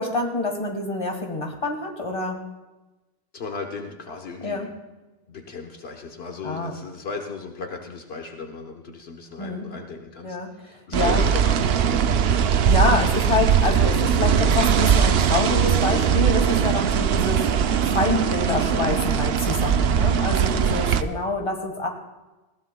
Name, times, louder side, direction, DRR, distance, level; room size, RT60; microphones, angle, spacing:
voice 1, 0.0-2.4 4.4-4.7 6.4-6.8 9.4-9.7 10.2-11.3 12.7-17.4 17.9-21.9, left 2 dB, 30° left, 3 dB, 1.8 m, -26 dB
voice 2, 3.3-4.6 5.3-12.0, left 4 dB, 75° left, 3 dB, 1.3 m, -36 dB
sound 1, 10.9-21.0, right 7 dB, 75° right, 0.8 m, -20 dB
20.5 x 15.5 x 2.3 m, 1.1 s
omnidirectional pair, 1.1 m